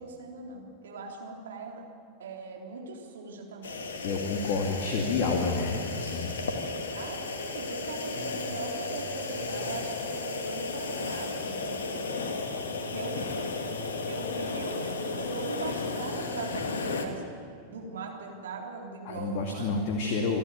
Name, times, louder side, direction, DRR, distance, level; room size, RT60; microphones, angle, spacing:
voice 1, 0.0-1.9 2.2-3.9 6.4-12.2 12.9-13.7 14.1-19.7, right 4 dB, 65° right, 0 dB, 3.5 m, -40 dB
sound 1, 3.6-17.1, left 3 dB, 65° left, 2.0 m, -34 dB
voice 2, 4.0-6.3 19.1-20.4, left 4 dB, 45° left, 2 dB, 2.4 m, -29 dB
27.0 x 12.0 x 9.4 m, 2.4 s
figure-of-eight pair, 90°, 0 cm